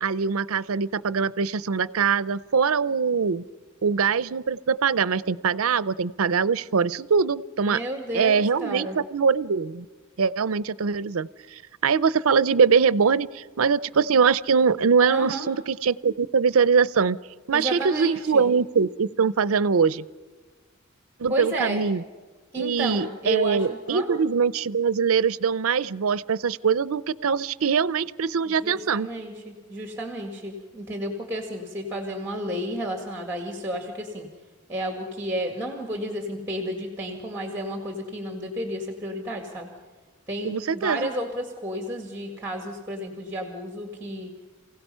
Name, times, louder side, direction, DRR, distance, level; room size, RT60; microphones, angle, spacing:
voice 1, 0.0-3.4 3.8-7.8 8.1-9.9 10.2-17.2 17.5-20.0 21.2-22.0 22.6-29.1 40.4-41.1, right 5 dB, 75° right, 17 dB, 0.6 m, -23 dB
voice 2, 7.7-9.0 15.1-15.5 17.5-18.5 21.3-21.8 22.5-24.1 28.5-34.3 34.7-39.7 40.3-44.3, equal, 10° right, 3 dB, 1.9 m, -32 dB
28.0 x 16.5 x 5.6 m, 1.4 s
head